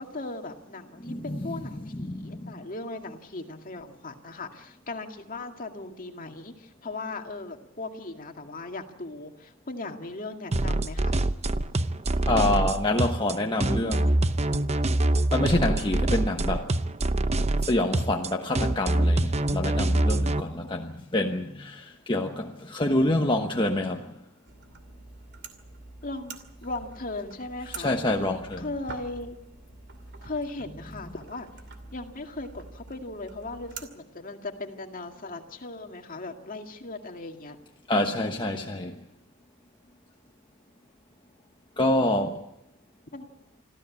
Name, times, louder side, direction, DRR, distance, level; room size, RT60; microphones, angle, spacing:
voice 1, 0.0-11.2 26.0-27.9 28.6-29.4 30.2-31.5 31.9-37.6 43.1-43.3, left 2 dB, 40° left, 2.1 m, -38 dB
voice 2, 1.0-2.5 12.2-14.1 15.3-16.7 17.6-24.1 27.8-28.7 37.9-38.9 41.8-42.4, left 1 dB, 25° left, 1.1 m, -27 dB
sound 1, 10.5-20.4, right 1 dB, 30° right, 0.8 m, -25 dB
sound 2, 24.5-33.9, right 4 dB, 55° right, 2.6 m, -46 dB
26.0 x 14.5 x 8.5 m
head